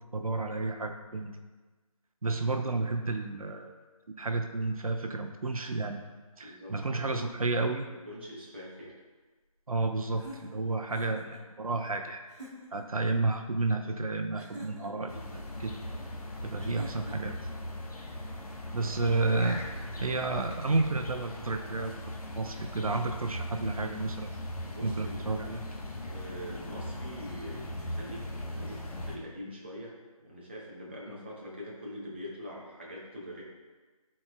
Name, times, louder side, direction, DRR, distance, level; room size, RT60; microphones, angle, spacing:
voice 1, 0.1-1.4 2.2-3.7 4.2-6.1 6.4-7.9 9.7-12.2 12.7-15.8 16.4-17.3 18.7-19.6 20.0-21.9 22.4-24.3 24.8-25.6, right 3 dB, 70° right, 5 dB, 0.6 m, -31 dB
voice 2, 6.4-7.3 7.8-8.9 24.6-25.3 26.0-33.4, equal, 20° right, -6 dB, 0.7 m, -44 dB
sound 1, 10.1-11.4 12.3-12.9 14.4-15.1 16.6-17.4, right 1 dB, 50° right, 1.3 m, -47 dB
sound 2, 15.1-29.2, left 1 dB, 80° left, 1.1 m, -39 dB
10.5 x 4.3 x 2.2 m, 1.3 s
figure-of-eight pair, 170°, 19 cm